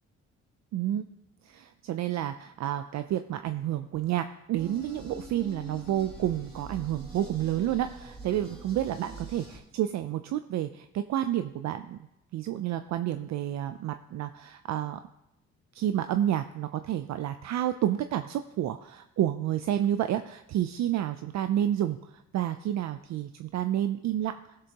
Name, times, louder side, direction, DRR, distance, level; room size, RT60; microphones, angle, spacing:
voice 1, 0.7-1.0 1.4-12.1 12.3-15.0 15.7-24.6, right 11 dB, 65° right, 10 dB, 0.5 m, -30 dB
sound 1, 4.6-9.6, right 1 dB, 20° right, 2.5 m, -44 dB
15.5 x 6.7 x 2.9 m, 0.88 s
cardioid pair, 90°, 30 cm